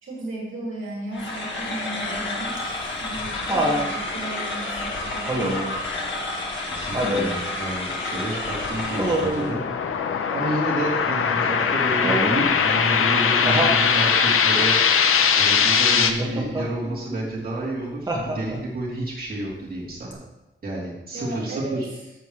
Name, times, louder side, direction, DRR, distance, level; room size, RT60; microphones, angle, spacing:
voice 1, 0.0-2.6 3.0-5.4 16.8-17.2 21.1-21.8, right 2 dB, 75° right, -4 dB, 2.8 m, -35 dB
sound 1, 1.1-9.6, left 2 dB, 65° left, 1.8 m, -30 dB
Laughter, 2.6-3.9 5.3-5.8 6.9-7.4 9.0-9.5 12.0-12.5 13.5-13.8 16.2-16.7 18.1-18.7 20.1-20.2, right 1 dB, 20° right, 1.8 m, -25 dB
voice 2, 6.6-9.6 10.3-14.7 15.4-20.2 20.6-21.9, right 1 dB, 45° right, -6 dB, 3.2 m, -30 dB
sound 2, 7.7-16.1, left 6 dB, 90° left, 0.8 m, -21 dB
13.5 x 7.1 x 3.2 m, 0.97 s
wide cardioid pair, 155°, 21 cm